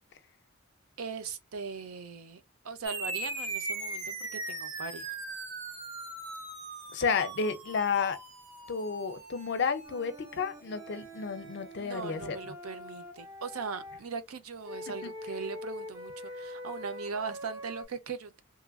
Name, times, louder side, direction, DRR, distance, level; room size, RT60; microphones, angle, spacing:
voice 1, 1.0-4.2 4.5-5.1 11.8-18.4, right 5 dB, 90° right, 0.6 m, -39 dB
sound 1, 2.8-11.7, right 2 dB, 60° right, 1.2 m, -40 dB
voice 2, 6.9-8.2 8.7-12.4, left 5 dB, 55° left, 0.5 m, -31 dB
Wind instrument woodwind instrument, 9.8-14.0 14.6-17.8, left 1 dB, 10° right, 0.5 m, -44 dB
3.0 x 2.4 x 2.2 m
head